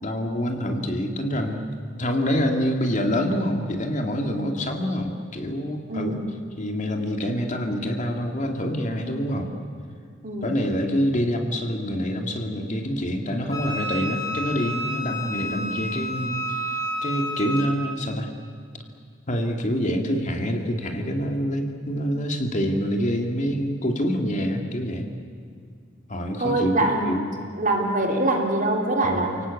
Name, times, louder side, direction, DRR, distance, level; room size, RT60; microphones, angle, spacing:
voice 1, 0.0-1.6 2.0-6.2 6.6-9.5 10.4-18.3 19.3-25.1 26.1-26.8 27.0-27.3 29.0-29.4, equal, 40° left, 3 dB, 2.3 m, -26 dB
voice 2, 5.9-6.3 10.2-10.6 26.4-27.3 27.5-29.3, right 2 dB, 45° right, 1 dB, 3.5 m, -24 dB
Wind instrument woodwind instrument, 13.5-17.7, equal, 20° left, 6.0 m, -30 dB
29.5 x 18.0 x 8.5 m, 2.3 s
head